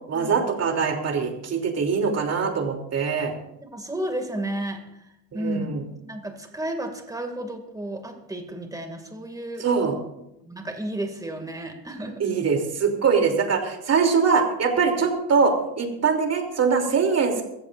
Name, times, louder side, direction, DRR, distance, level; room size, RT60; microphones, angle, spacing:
voice 1, 0.1-3.3 5.3-5.8 9.6-9.9 12.2-17.4, right 5 dB, 40° right, 2 dB, 3.0 m, -23 dB
voice 2, 3.6-5.7 6.0-9.6 10.4-12.2, right 1 dB, 10° right, 4 dB, 2.3 m, -32 dB
23.5 x 14.5 x 2.6 m, 0.84 s
cardioid pair, 125°, 41 cm